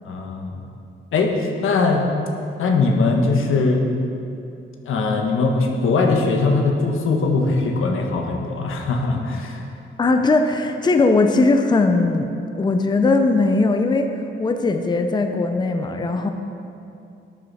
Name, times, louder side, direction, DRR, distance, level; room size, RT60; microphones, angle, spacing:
voice 1, 0.0-0.6 1.1-2.1 2.6-3.8 4.8-9.6, left 3 dB, 85° left, 2 dB, 1.3 m, -20 dB
voice 2, 10.0-12.3 12.6-14.1 14.4-16.3, left 3 dB, 20° left, 6 dB, 0.6 m, -19 dB
11.5 x 9.5 x 4.2 m, 2.6 s
wide cardioid pair, 135°, 21 cm